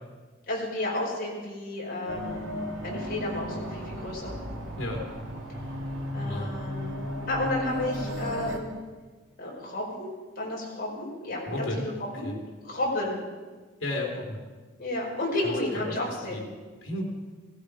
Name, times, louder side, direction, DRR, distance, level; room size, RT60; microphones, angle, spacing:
voice 1, 0.5-2.5 2.8-4.3 6.1-8.7 9.4-12.3 12.6-13.2 14.8-16.4, left 1 dB, 45° left, -3 dB, 5.2 m, -32 dB
sound 1, 2.1-8.6, equal, 80° right, 2.4 m, -35 dB
voice 2, 6.2-6.5 11.5-11.9 12.2-12.4 13.8-14.4 15.4-16.0 16.3-16.4 16.8-17.0, left 1 dB, 70° left, -2 dB, 3.6 m, -33 dB
17.0 x 16.5 x 5.0 m, 1.4 s
head